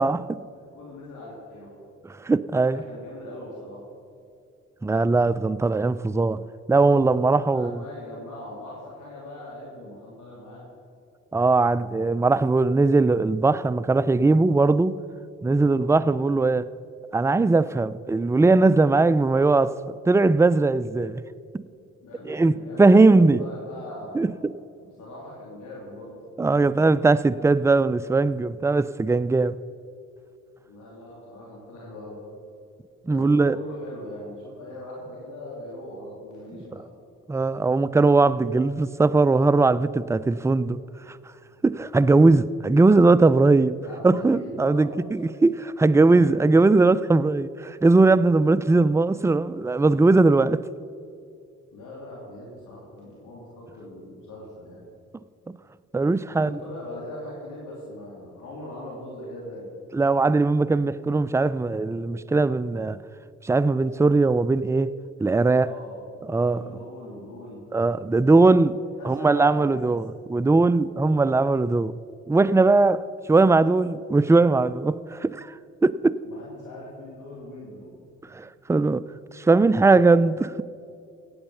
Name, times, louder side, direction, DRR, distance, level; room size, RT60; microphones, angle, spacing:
voice 1, 0.0-0.4 2.1-2.8 4.8-7.8 11.3-15.0 15.4-16.7 17.1-21.2 22.3-23.4 24.1-24.5 26.4-29.6 33.1-33.6 37.3-40.8 41.1-41.2 41.6-43.8 44.0-50.7 55.9-56.6 59.9-63.0 63.4-64.9 65.2-65.7 66.3-66.6 67.7-68.8 69.0-71.9 72.3-75.5 75.8-76.2 78.3-79.0 79.3-80.6, right 3 dB, 10° right, 0.4 m, -20 dB
voice 2, 0.5-1.7 2.7-3.8 7.4-10.6 15.5-15.9 22.0-24.2 24.8-26.9 30.7-32.2 33.1-36.9 43.8-44.9 45.9-46.4 51.7-54.8 56.3-59.7 65.5-67.6 69.0-70.0 76.2-77.9, left 1 dB, 75° left, 3.0 m, -40 dB
16.0 x 8.7 x 5.5 m
supercardioid pair, 50°, 31 cm